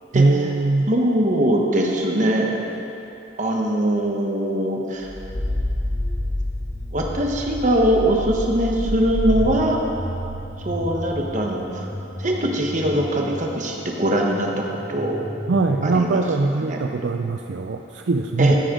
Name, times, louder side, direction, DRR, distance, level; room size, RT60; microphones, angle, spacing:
voice 1, 0.1-0.9 15.5-18.6, right 3 dB, 65° right, 4 dB, 0.4 m, -21 dB
voice 2, 0.9-2.6 3.4-5.1 6.9-9.8 10.6-11.9 12.2-14.6 14.9-15.2 15.8-16.2 16.7-16.8 18.4-18.6, right 1 dB, 40° right, 0 dB, 1.2 m, -21 dB
sound 1, 5.0-16.0, left 1 dB, 10° left, 1.0 m, -30 dB
13.5 x 10.0 x 3.8 m, 2.9 s
head